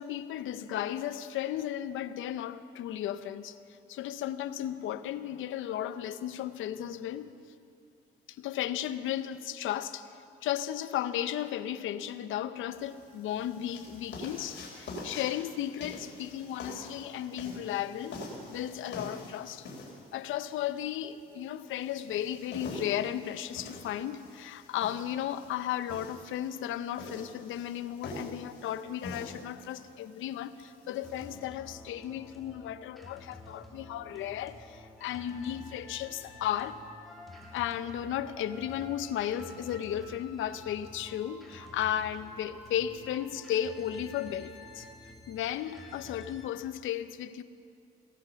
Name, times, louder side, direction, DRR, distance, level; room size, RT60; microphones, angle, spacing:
voice 1, 0.0-3.6 3.9-7.3 8.3-10.1 10.4-18.2 18.5-19.7 20.1-36.8 37.5-44.9 45.3-47.4, left 11 dB, 80° left, 13 dB, 0.7 m, -35 dB
sound 1, 12.7-31.3, left 2 dB, 60° left, 3.5 m, -45 dB
sound 2, 31.0-46.5, left 2 dB, ahead, 2.4 m, -50 dB
16.5 x 11.5 x 7.0 m, 2.5 s
cardioid pair, 90°, 20 cm